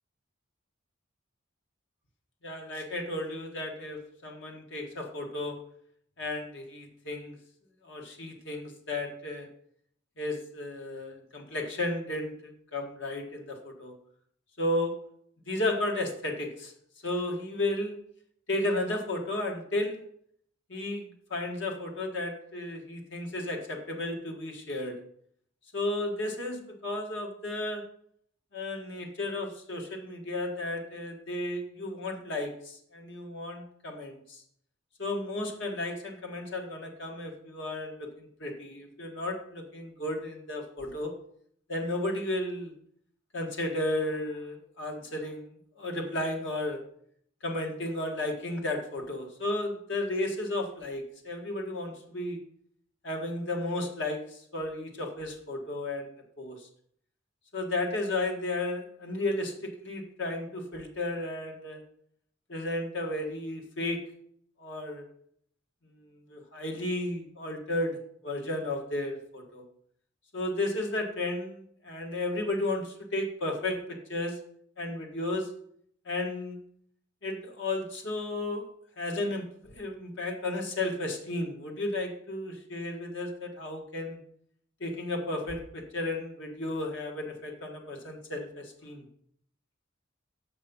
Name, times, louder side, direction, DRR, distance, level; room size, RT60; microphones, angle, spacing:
voice 1, 2.4-5.6 6.2-7.3 7.8-9.5 10.2-13.9 14.6-14.9 15.5-16.7 17.0-18.0 18.5-20.0 20.7-25.0 25.7-27.8 28.5-34.4 35.0-41.1 41.7-42.7 43.3-45.5 45.8-46.8 47.4-52.4 53.0-56.6 57.5-61.8 62.5-64.0 64.6-65.0 66.3-68.0 68.2-69.6 70.3-73.8 74.1-74.4 74.8-75.5 76.0-76.6 77.2-78.6 79.0-84.2 84.8-89.0, left 2 dB, 65° left, 1 dB, 1.5 m, -33 dB
6.9 x 5.4 x 5.4 m, 0.67 s
head